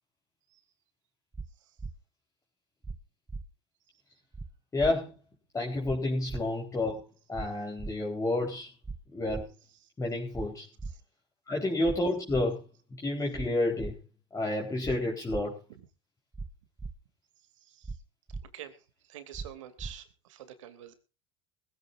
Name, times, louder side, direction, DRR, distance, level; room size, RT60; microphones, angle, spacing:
sound 1, 1.3-1.5 1.8-1.9 2.8-3.0 3.3-3.4 4.3-4.5 4.8-4.9 5.8-6.0 6.3-6.4 7.3-7.5 7.8-7.9 8.8-9.0 9.3-9.4 10.3-10.5 10.8-10.9 11.8-12.0 12.3-12.4 13.3-13.5 13.8-13.9 14.8-15.0 15.3-15.4 16.3-16.5 16.8-16.9 17.8-18.0 18.3-18.4 19.3-19.5 19.8-19.9, right 3 dB, 15° right, 1.1 m, -38 dB
voice 1, 4.7-5.1 5.5-7.0 7.3-8.7 9.1-9.5 10.0-10.7 11.5-12.6 12.9-14.0 14.3-15.5, left 2 dB, 20° left, -2 dB, 4.1 m, -30 dB
voice 2, 17.6-18.0 18.4-18.7 19.1-20.9, right 11 dB, 85° right, 10 dB, 2.8 m, -46 dB
21.5 x 15.5 x 2.6 m, 0.31 s
hypercardioid pair, 90°, 16 cm